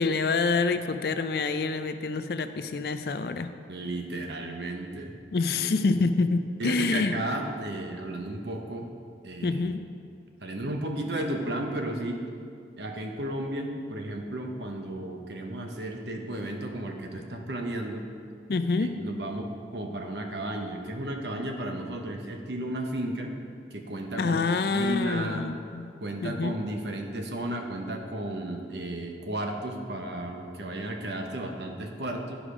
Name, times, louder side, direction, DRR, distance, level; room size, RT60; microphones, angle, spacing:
voice 1, 0.0-3.5 5.3-7.1 9.4-9.8 18.5-18.9 24.2-25.9 26.2-26.5, left 4 dB, 60° left, 9 dB, 0.4 m, -27 dB
voice 2, 3.7-5.1 5.6-6.0 6.6-8.9 9.2-9.6 10.4-12.2 12.8-18.0 18.8-23.4 23.7-24.4 24.7-25.4 26.0-32.4, right 1 dB, 75° right, 2 dB, 0.9 m, -33 dB
10.5 x 5.0 x 5.0 m, 2.4 s
head